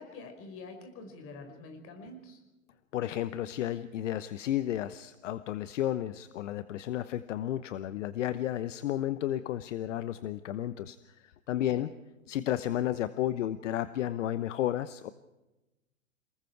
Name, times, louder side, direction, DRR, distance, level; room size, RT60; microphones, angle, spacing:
voice 1, 0.0-2.4 11.7-11.9, left 3 dB, 35° left, 6 dB, 5.3 m, -46 dB
voice 2, 2.9-11.0 11.2-11.9 12.3-15.1, left 12 dB, 65° left, 14 dB, 1.0 m, -32 dB
28.5 x 19.5 x 4.7 m, 1.0 s
hypercardioid pair, 115°, 40 cm